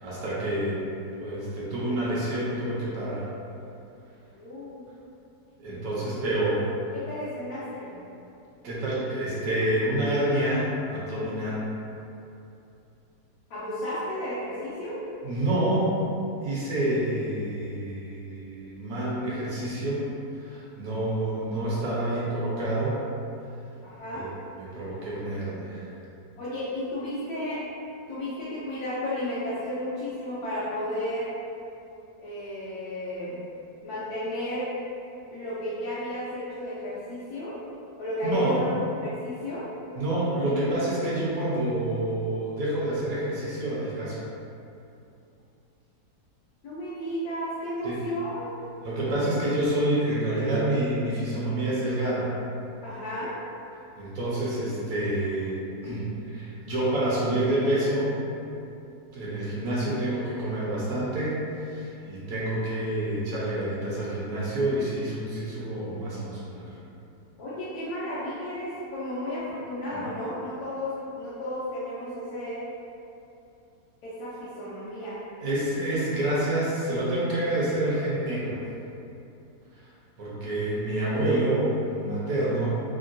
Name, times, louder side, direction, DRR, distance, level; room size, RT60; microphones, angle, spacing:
voice 1, 0.0-0.8 1.2-3.2 5.6-6.6 8.6-11.6 15.2-15.9 16.4-20.0 20.4-23.0 24.1-24.3 24.6-25.8 38.2-38.6 40.0-44.2 47.8-48.0 48.8-52.3 54.0-56.0 56.3-58.1 59.1-66.7 69.9-70.0 75.4-78.6 80.2-82.7, right 1 dB, 65° right, -7 dB, 1.1 m, -28 dB
voice 2, 4.3-4.9 6.9-7.9 13.5-15.0 23.8-24.3 26.4-27.6 28.1-31.3 32.2-33.4 33.8-34.7 35.3-37.6 38.0-38.7 39.0-39.7 46.6-48.5 52.8-53.3 55.8-55.9 67.4-72.6 74.0-75.2, left 1 dB, 70° left, -11 dB, 1.1 m, -33 dB
3.6 x 2.2 x 2.5 m, 2.7 s
omnidirectional pair, 1.7 m